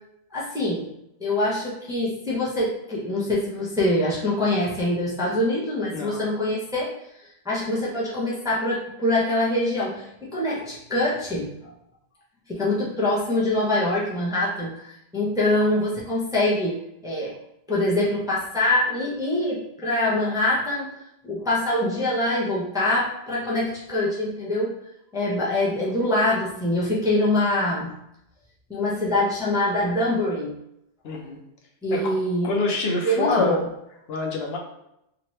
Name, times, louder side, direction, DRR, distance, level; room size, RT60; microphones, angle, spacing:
voice 1, 0.3-0.9 1.2-6.9 7.4-11.5 12.5-16.7 17.0-17.3 17.7-20.9 21.2-24.7 25.1-27.9 28.7-30.5 31.8-32.5 33.0-33.6, left 1 dB, 5° right, -6 dB, 0.5 m, -24 dB
voice 2, 5.9-6.3 31.0-31.4 31.9-32.1 32.4-33.6 34.1-34.6, left 3 dB, 70° left, 0 dB, 0.9 m, -25 dB
2.9 x 2.4 x 3.1 m, 0.80 s
omnidirectional pair, 1.1 m